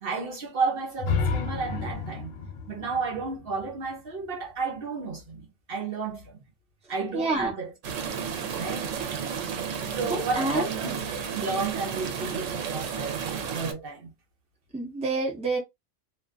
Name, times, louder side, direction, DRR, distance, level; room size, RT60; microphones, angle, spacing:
voice 1, 0.0-2.3 2.7-6.4 6.9-7.7 8.6-9.0 9.9-14.1, right 4 dB, 55° right, 0.8 m, -32 dB
sound 1, 1.0-4.8, left 5 dB, 60° left, 0.7 m, -32 dB
voice 2, 7.1-7.5 10.1-10.7 14.7-15.6, right 3 dB, 5° right, 0.6 m, -28 dB
sound 2, 7.8-13.7, right 7 dB, 90° right, 1.0 m, -32 dB
2.4 x 2.1 x 2.4 m
omnidirectional pair, 1.3 m